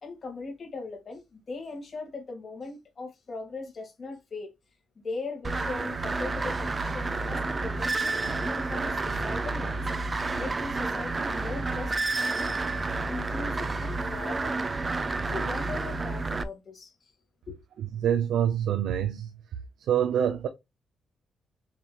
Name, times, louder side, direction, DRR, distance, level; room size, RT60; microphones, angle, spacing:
voice 1, 0.0-4.5 5.0-9.8 10.3-12.1 12.4-12.6 13.1-14.7 15.3-17.1 17.5-17.6, left 3 dB, 45° left, 1.9 m, -39 dB
sound 1, 5.4-16.4, right 3 dB, 30° right, 0.4 m, -30 dB
voice 2, 18.0-19.3 19.8-20.5, right 9 dB, 85° right, 0.6 m, -25 dB
6.9 x 3.0 x 2.4 m
cardioid pair, 105°, 0 cm